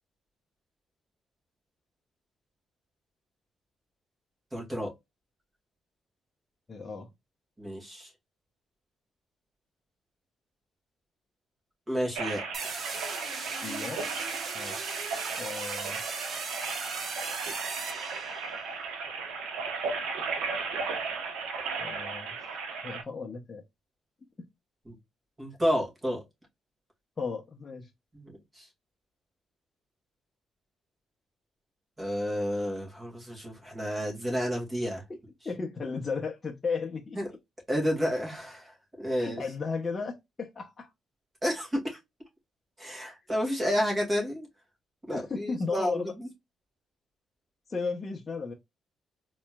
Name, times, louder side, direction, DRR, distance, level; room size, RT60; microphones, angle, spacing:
voice 1, 4.5-4.9 7.6-8.1 11.9-12.8 24.9-25.0 25.4-26.2 28.1-28.7 32.0-35.0 37.2-37.3 37.7-39.4 41.4-42.0 42.8-44.5 45.1-46.3, equal, 20° right, 2.2 m, -31 dB
voice 2, 6.7-7.1 12.3-12.4 13.6-14.1 14.5-15.1 15.4-16.0 21.8-22.5 22.8-23.6 27.2-27.9 35.1-35.2 35.4-37.2 39.1-40.9 45.1-46.1 47.7-48.5, left 4 dB, 30° left, 0.8 m, -35 dB
sound 1, 12.2-23.0, right 4 dB, 90° right, 1.0 m, -35 dB
sound 2, 12.5-18.7, right 4 dB, 50° right, 1.1 m, -38 dB
4.2 x 3.1 x 2.3 m
cardioid pair, 90°, 0 cm